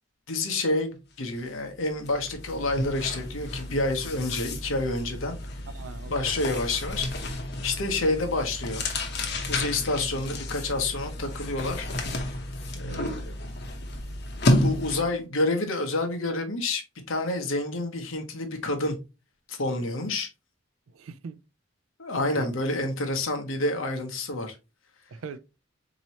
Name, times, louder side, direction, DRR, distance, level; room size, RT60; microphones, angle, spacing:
voice 1, 0.3-5.4 6.1-7.1 7.6-8.8 9.5-11.9 12.7-13.2 14.6-16.8 17.1-18.9 19.5-20.3 22.0-24.6, left 2 dB, 90° left, 0.9 m, -28 dB
sound 1, 1.3-1.5 1.8-15.2, left 1 dB, 55° left, 0.8 m, -31 dB
voice 2, 5.7-6.3 12.8-13.2 20.9-21.4 22.3-22.5 25.1-25.4, right 4 dB, 90° right, 0.4 m, -40 dB
4.2 x 2.9 x 2.8 m
head